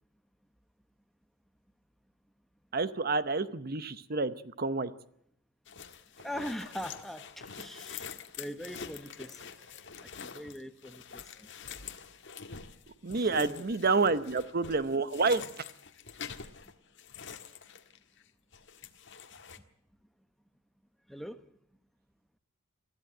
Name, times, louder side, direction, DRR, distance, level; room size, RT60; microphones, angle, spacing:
voice 1, 2.7-4.9 13.0-15.4, right 3 dB, 45° right, 0.8 m, -29 dB
sound 1, 5.7-18.3 18.5-19.6, left 7 dB, 55° left, 1.5 m, -46 dB
voice 2, 6.2-9.6 10.0-11.8 13.2-13.7 21.1-21.4, equal, ahead, 0.9 m, -42 dB
21.5 x 14.0 x 9.0 m
head